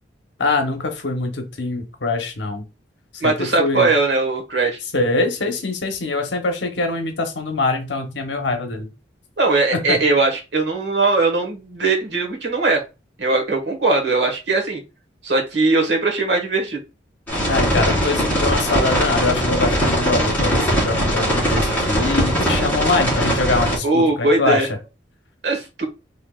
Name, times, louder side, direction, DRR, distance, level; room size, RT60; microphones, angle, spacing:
voice 1, 0.4-2.6 3.2-3.3 3.6-3.9 4.9-8.9 9.7-10.0 17.5-24.7, left 3 dB, 75° left, 4 dB, 0.9 m, -23 dB
voice 2, 3.2-4.8 9.4-12.8 13.2-14.8 15.2-16.8 23.8-24.7 25.4-25.8, right 3 dB, 70° right, 2 dB, 1.3 m, -19 dB
sound 1, 17.3-23.8, equal, 10° left, 2.4 m, -20 dB
4.5 x 3.4 x 2.3 m, 0.27 s
head